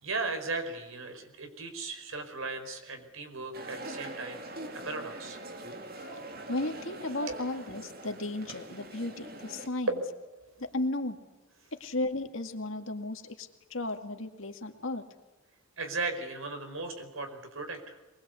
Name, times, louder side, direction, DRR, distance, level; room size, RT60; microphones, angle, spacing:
voice 1, 0.0-4.4 4.8-5.4 7.3-7.4 9.9-10.0 15.8-18.0, right 3 dB, 80° right, 6 dB, 5.0 m, -36 dB
sound 1, 3.5-9.7, right 2 dB, 45° right, 2.5 m, -43 dB
voice 2, 6.5-10.0 10.6-11.2 11.7-15.0, left 2 dB, 70° left, 6 dB, 2.2 m, -34 dB
23.5 x 22.0 x 8.4 m, 1.1 s
head